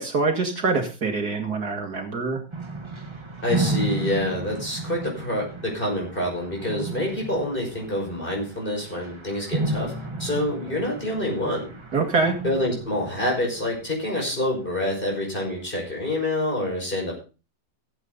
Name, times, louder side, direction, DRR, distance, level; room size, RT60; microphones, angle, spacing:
voice 1, 0.0-2.4 11.9-12.4, right 4 dB, 60° right, 3 dB, 2.2 m, -24 dB
sound 1, 2.5-14.6, right 2 dB, 20° right, 1.2 m, -33 dB
voice 2, 3.4-9.9 10.2-11.7 12.4-17.2, left 1 dB, 30° left, -1 dB, 5.8 m, -27 dB
15.5 x 8.4 x 3.9 m, 0.33 s
omnidirectional pair, 1.9 m